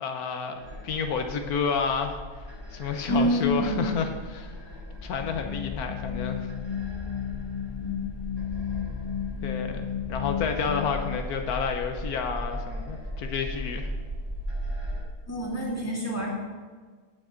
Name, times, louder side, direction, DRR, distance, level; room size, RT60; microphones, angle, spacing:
voice 1, 0.0-2.4 2.7-4.7 5.0-6.5 9.4-9.8 10.1-13.9, left 6 dB, 80° left, 5 dB, 1.3 m, -30 dB
sound 1, 0.5-15.0, equal, 55° right, 3.3 m, -38 dB
voice 2, 3.1-3.7 7.8-8.0 15.3-16.3, equal, 10° left, -5 dB, 2.5 m, -27 dB
sound 2, 5.2-11.2, left 8 dB, 45° left, 0.4 m, -33 dB
17.0 x 6.4 x 3.8 m, 1.5 s
omnidirectional pair, 1.6 m